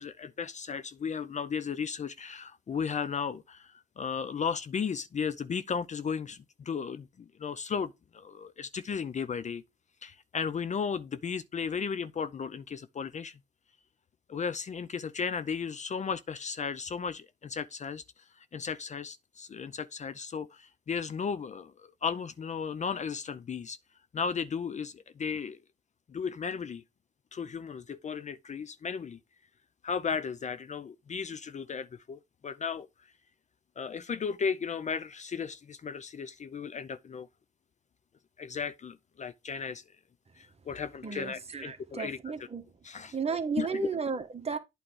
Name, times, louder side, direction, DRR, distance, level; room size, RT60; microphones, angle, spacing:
voice 1, 0.0-9.6 10.0-13.4 14.3-18.0 18.4-23.8 24.1-25.6 26.1-26.8 27.3-29.2 29.8-32.9 33.8-37.3 38.4-39.8 40.4-42.2 42.8-43.1 43.6-43.9, left 6 dB, 35° left, 0.6 m, -35 dB
voice 2, 41.0-42.7 43.1-44.6, right 5 dB, 30° right, 1.4 m, -33 dB
8.8 x 3.4 x 6.1 m
cardioid pair, 90°, 20 cm